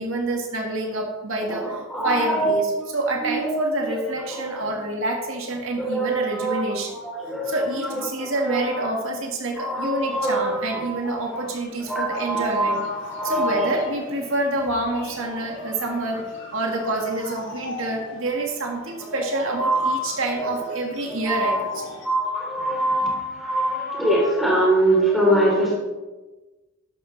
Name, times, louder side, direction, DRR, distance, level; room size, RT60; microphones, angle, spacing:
voice 1, 0.0-1.7 2.0-2.6 2.9-6.9 7.5-12.8 13.2-16.2 16.5-21.6, right 2 dB, 70° right, 2 dB, 1.7 m, -27 dB
voice 2, 1.4-2.9 3.2-3.6 3.9-4.0 4.3-4.8 5.8-8.9 9.6-11.4 11.8-13.7 19.0-19.2 19.5-20.7 21.2-21.6 22.0-25.8, right 1 dB, ahead, -3 dB, 3.5 m, -24 dB
sound 1, 10.0-22.1, left 1 dB, 55° left, 2.8 m, -40 dB
13.0 x 11.0 x 3.3 m, 1.2 s
head